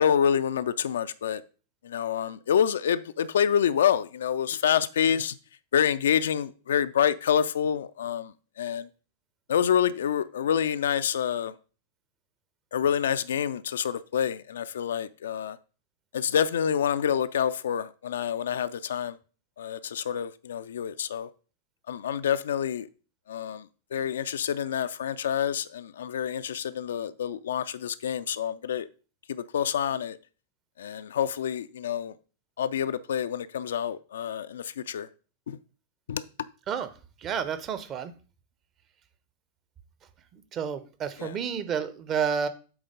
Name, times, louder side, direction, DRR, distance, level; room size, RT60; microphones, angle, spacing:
voice 1, 0.0-1.4 1.8-5.4 5.7-8.3 8.6-8.9 9.5-11.5 12.7-15.6 16.1-19.2 19.6-21.3 21.9-22.9 23.3-23.6 23.9-28.9 29.3-30.2 30.8-32.1 32.6-35.1 35.5-35.6 36.1-36.2 41.2-41.3, left 8 dB, 60° left, 0.3 m, -27 dB
voice 2, 37.2-38.1 40.3-42.5, right 7 dB, 30° right, 0.8 m, -30 dB
7.9 x 3.5 x 5.1 m
figure-of-eight pair, 95°, 0 cm